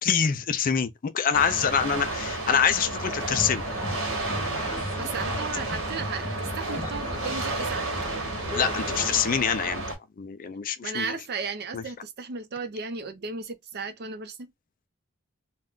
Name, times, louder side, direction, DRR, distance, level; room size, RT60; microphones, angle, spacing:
voice 1, 0.0-3.6 8.5-9.8 10.2-11.2 11.7-11.8, left 7 dB, 40° left, 0.4 m, -25 dB
sound 1, 1.3-9.9, right 2 dB, 80° right, 1.1 m, -32 dB
sound 2, 3.0-9.2, left 1 dB, 20° left, 0.8 m, -36 dB
voice 2, 5.0-7.9 10.8-14.5, right 4 dB, 50° right, 0.5 m, -35 dB
2.4 x 2.2 x 3.6 m
head